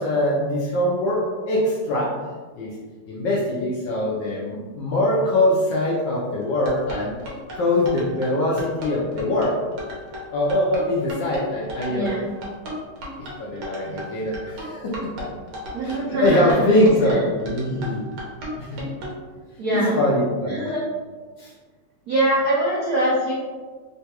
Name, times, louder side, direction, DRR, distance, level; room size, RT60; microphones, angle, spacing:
voice 1, 0.0-2.1 2.6-2.7 3.1-7.1 7.5-9.6 10.3-12.1 13.2-15.0 15.8-18.0 18.6-18.8 19.7-20.7 21.4-21.5, left 1 dB, 75° left, -5 dB, 1.1 m, -22 dB
sound 1, 6.4-19.2, equal, 70° right, 1.5 m, -34 dB
voice 2, 11.9-12.3 15.7-16.7 17.1-17.2 19.6-20.0 20.5-20.8 22.1-23.3, right 1 dB, 90° right, -5 dB, 0.8 m, -23 dB
3.8 x 2.2 x 2.8 m, 1.5 s
omnidirectional pair, 2.4 m